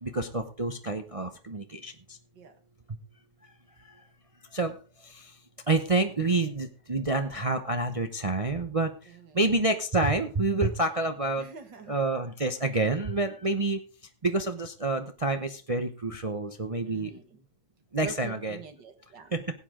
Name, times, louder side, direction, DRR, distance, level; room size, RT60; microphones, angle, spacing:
voice 1, 0.0-2.2 2.9-3.0 3.8-4.0 4.5-5.4 5.7-11.5 11.9-13.8 14.2-17.1 17.9-18.6 19.3-19.5, right 2 dB, 50° right, 7 dB, 0.4 m, -28 dB
voice 2, 9.1-9.5 11.4-12.0 16.9-17.5 18.0-19.3, right 5 dB, 75° right, 8 dB, 2.4 m, -45 dB
17.5 x 8.4 x 3.7 m, 0.37 s
omnidirectional pair, 1.9 m